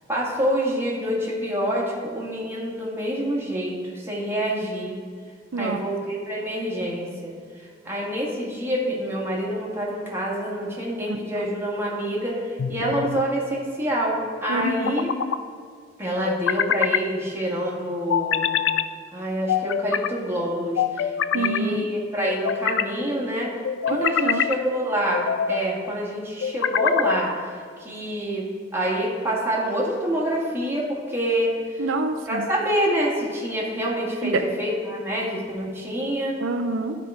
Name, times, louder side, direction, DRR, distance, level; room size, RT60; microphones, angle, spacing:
voice 1, 0.1-5.0 5.6-15.1 16.0-18.5 19.1-23.5 23.9-28.4 28.7-31.8 32.3-36.4, equal, 15° right, -5 dB, 1.8 m, -27 dB
voice 2, 11.1-11.5 14.5-15.0 21.3-21.9 24.0-24.5 31.8-32.4 34.2-34.4 36.4-37.0, right 3 dB, 85° right, 5 dB, 0.6 m, -27 dB
sound 1, 12.6-13.3 14.6-15.4 16.2-17.1 18.1-18.9 19.5-20.1 20.8-21.6 22.3-22.9 23.6-24.6 25.1-25.6 26.4-27.2, left 8 dB, 80° left, 0.4 m, -24 dB
12.5 x 4.7 x 4.9 m, 2.1 s
head